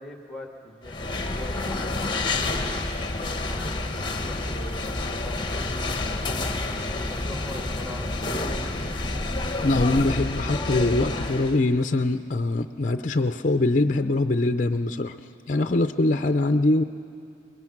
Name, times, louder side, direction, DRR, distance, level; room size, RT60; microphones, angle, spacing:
voice 1, 0.0-2.8 3.2-6.4 6.9-8.9, left 1 dB, ahead, 2 dB, 1.8 m, -43 dB
sound 1, 0.8-11.6, left 2 dB, 25° left, 1.1 m, -29 dB
voice 2, 9.6-15.2 15.5-16.8, left 2 dB, 40° left, 7 dB, 0.5 m, -23 dB
24.5 x 21.5 x 6.0 m, 2.4 s
head